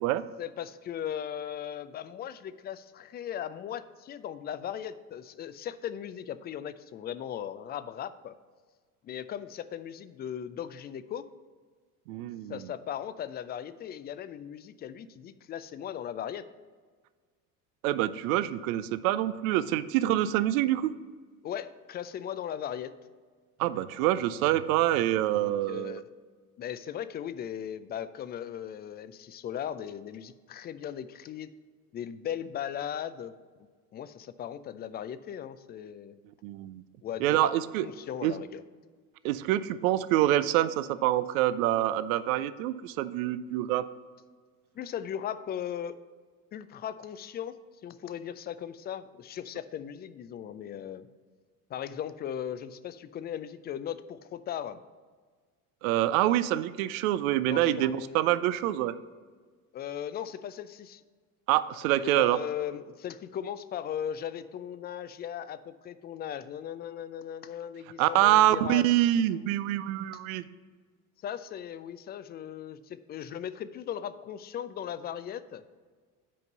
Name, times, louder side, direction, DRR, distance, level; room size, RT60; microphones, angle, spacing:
voice 1, 0.4-8.4 9.0-11.3 12.5-16.5 21.4-22.9 25.3-26.0 26.6-31.5 31.9-33.3 33.9-36.2 37.0-37.5 37.8-38.6 44.8-46.0 46.5-51.1 51.7-54.8 57.4-58.2 59.7-61.0 62.0-68.9 71.2-75.6, left 9 dB, 25° left, 14 dB, 0.3 m, -38 dB
voice 2, 12.1-12.6 17.8-20.9 23.6-26.0 36.4-36.8 37.2-37.9 38.2-38.3 39.2-43.9 55.8-58.9 61.5-62.4 68.0-70.4, right 13 dB, 65° right, 15 dB, 0.5 m, -26 dB
8.5 x 5.2 x 5.4 m, 1.5 s
hypercardioid pair, 65°, 45 cm